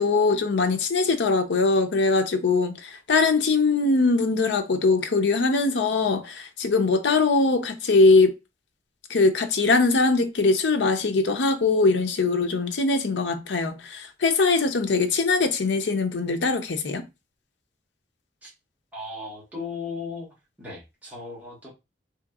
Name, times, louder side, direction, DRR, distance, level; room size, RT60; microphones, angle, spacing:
voice 1, 0.0-8.3 9.1-17.0, left 3 dB, 75° left, 0.6 m, -22 dB
voice 2, 18.9-20.3 20.6-21.7, left 4 dB, 10° right, 1.4 m, -36 dB
3.5 x 2.8 x 2.3 m
head